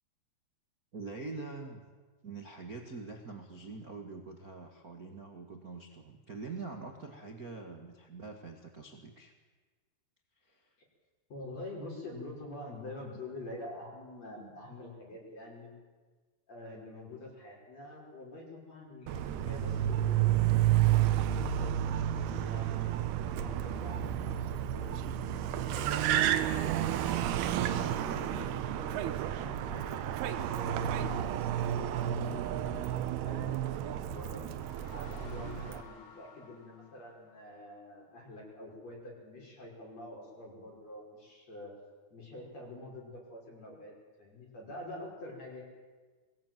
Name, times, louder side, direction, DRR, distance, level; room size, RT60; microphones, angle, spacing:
voice 1, 0.9-1.8 2.2-9.3 10.4-10.7, right 3 dB, 60° right, 3 dB, 0.9 m, -44 dB
voice 2, 11.3-15.7 16.5-22.9 23.3-27.0 27.5-34.4 34.9-41.7 42.1-43.9 44.2-45.6, left 1 dB, 40° left, -2 dB, 6.5 m, -46 dB
Car, 19.1-35.8, right 11 dB, 80° right, 3.0 m, -31 dB
sound 1, 34.3-37.8, left 5 dB, 60° left, 4.0 m, -55 dB
22.5 x 19.0 x 9.2 m, 1.4 s
omnidirectional pair, 4.6 m